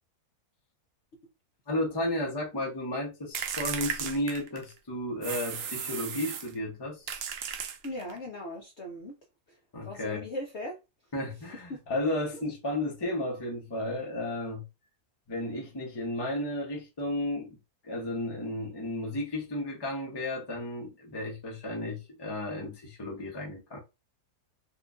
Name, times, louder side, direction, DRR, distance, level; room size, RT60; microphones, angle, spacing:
voice 1, 1.7-7.1 9.7-10.2 11.1-14.6 15.3-17.6 17.8-23.8, left 1 dB, 20° left, 0.7 m, -33 dB
sound 1, 3.3-4.8 5.2-6.5 7.1-8.2, right 7 dB, 85° right, 0.5 m, -35 dB
voice 2, 7.8-9.2 9.5-10.8 11.7-11.8 12.3-12.4, left 1 dB, 55° left, 0.8 m, -39 dB
4.4 x 2.4 x 2.4 m
omnidirectional pair, 1.7 m